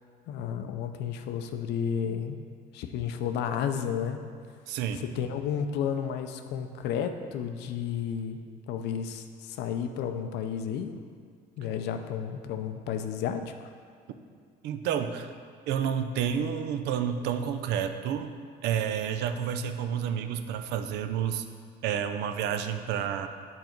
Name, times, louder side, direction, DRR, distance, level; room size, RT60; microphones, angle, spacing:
voice 1, 0.3-2.4 2.7-4.2 5.2-8.4 8.7-10.9 11.6-13.5, left 8 dB, 85° left, 7 dB, 0.5 m, -32 dB
voice 2, 4.7-5.0 14.6-15.3 15.7-18.3 18.6-21.5 21.8-23.3, right 8 dB, 80° right, 8 dB, 0.5 m, -30 dB
7.2 x 3.9 x 4.5 m, 2.1 s
cardioid pair, 110°, 17 cm